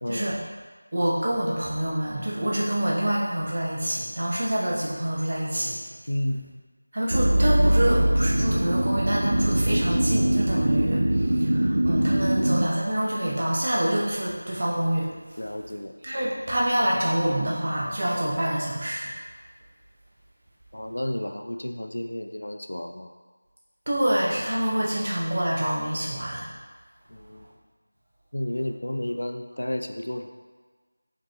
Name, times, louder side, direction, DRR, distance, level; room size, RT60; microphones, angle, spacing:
voice 1, 0.9-5.8 6.3-6.5 6.9-15.1 16.0-19.1 23.9-26.5, right 1 dB, 35° right, -4 dB, 0.7 m, -26 dB
voice 2, 6.1-6.4 15.4-15.9 20.7-23.1 27.1-27.5 28.3-30.3, left 1 dB, 85° left, 5 dB, 0.4 m, -31 dB
sound 1, 7.1-12.7, right 1 dB, 60° right, 0.3 m, -22 dB
5.1 x 3.0 x 2.8 m, 1.4 s
figure-of-eight pair, 180°, 0 cm